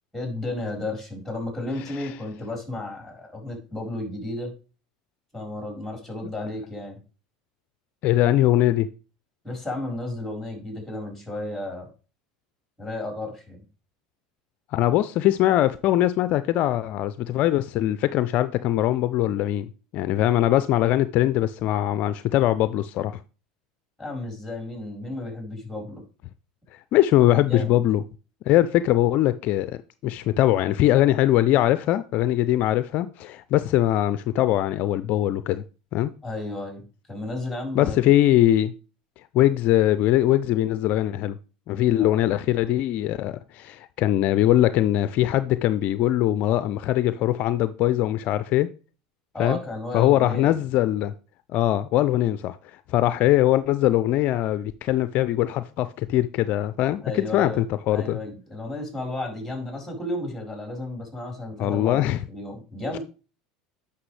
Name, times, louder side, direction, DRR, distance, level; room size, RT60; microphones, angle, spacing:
voice 1, 0.1-4.5 5.3-7.0 9.4-11.9 12.8-13.6 24.0-26.0 27.5-27.9 36.2-36.8 37.1-38.0 42.0-42.3 49.3-50.6 57.0-57.6 57.9-63.0, left 2 dB, ahead, 4.3 m, -33 dB
voice 2, 8.0-8.9 14.7-23.2 26.9-28.0 28.5-35.6 35.9-36.1 37.7-38.7 39.3-41.4 41.7-48.7 49.4-49.6 49.9-51.1 51.5-52.6 52.9-58.2 61.6-62.2 62.9-63.0, left 13 dB, 55° left, 0.4 m, -21 dB
9.7 x 5.8 x 3.3 m
hypercardioid pair, 85°, 3 cm